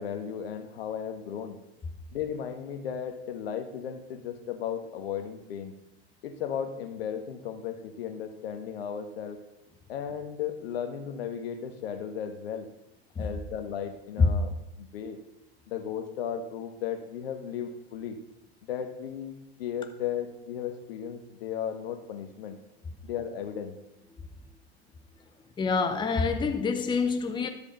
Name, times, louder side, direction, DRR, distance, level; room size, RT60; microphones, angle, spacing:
voice 1, 0.0-1.6 2.1-5.7 6.2-9.4 9.9-12.7 13.2-15.2 15.7-18.2 18.7-22.6 23.0-23.7, left 8 dB, 70° left, 1.4 m, -35 dB
voice 2, 25.6-27.5, left 4 dB, 15° left, 0.8 m, -26 dB
12.0 x 5.2 x 5.2 m
hypercardioid pair, 95°, 32 cm